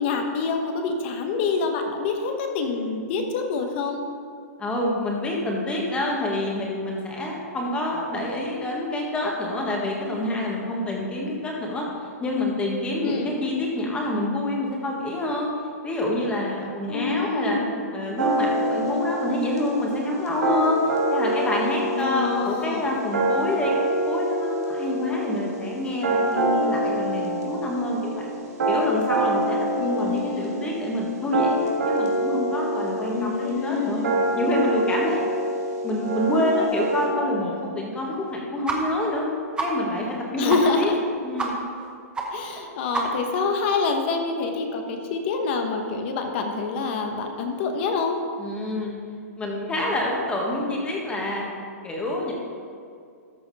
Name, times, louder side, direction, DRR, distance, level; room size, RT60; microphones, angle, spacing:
voice 1, 0.0-4.0 13.0-13.3 16.9-17.8 22.0-22.9 29.8-30.7 33.1-34.1 40.4-41.0 42.3-48.2, left 4 dB, 45° left, 4 dB, 1.1 m, -26 dB
voice 2, 4.6-11.9 12.2-15.5 15.8-17.6 17.9-20.8 21.1-28.3 28.7-34.0 34.4-35.2 35.8-39.2 39.6-40.9 41.2-41.6 48.4-48.9 49.4-51.5 51.8-52.3, left 1 dB, 10° left, -2 dB, 1.6 m, -27 dB
sound 1, 18.2-37.1, right 1 dB, 85° right, 2.1 m, -26 dB
sound 2, 38.7-38.8 39.1-39.2 39.6-39.7 40.1-40.2 40.5-40.6 40.9-41.0 41.4-41.5 41.8-41.9 42.1-42.2 42.5-42.6 42.9-43.3, right 4 dB, 10° right, 1.0 m, -28 dB
13.5 x 5.7 x 4.2 m, 2.3 s
hypercardioid pair, 145°, 8 cm